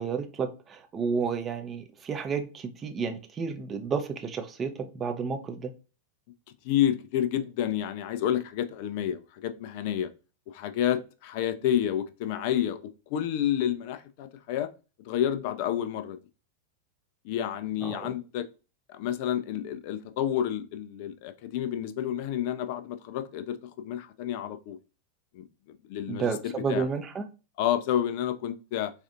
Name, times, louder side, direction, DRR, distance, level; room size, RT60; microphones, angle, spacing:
voice 1, 0.0-4.7 5.0-5.7 17.8-18.0 26.1-27.2, right 5 dB, 25° right, 0.6 m, -31 dB
voice 2, 6.6-10.1 10.5-14.7 15.0-16.2 17.2-18.5 18.9-24.8 25.3-26.9 27.6-28.9, left 10 dB, 45° left, 0.4 m, -30 dB
4.0 x 2.5 x 2.4 m
figure-of-eight pair, 90°, 0 cm